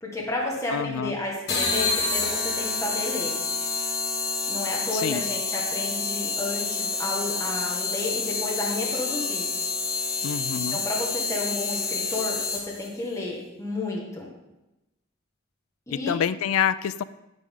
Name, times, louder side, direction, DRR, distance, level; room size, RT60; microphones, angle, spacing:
voice 1, 0.0-3.3 4.5-9.5 10.5-14.3 15.9-16.2, left 2 dB, 15° left, -3 dB, 1.6 m, -32 dB
voice 2, 0.7-1.1 4.9-5.2 10.2-10.8 15.9-17.0, left 8 dB, 80° left, 16 dB, 0.3 m, -27 dB
sound 1, 1.5-12.9, left 4 dB, 55° left, 1.8 m, -28 dB
9.7 x 9.4 x 3.8 m, 0.95 s
head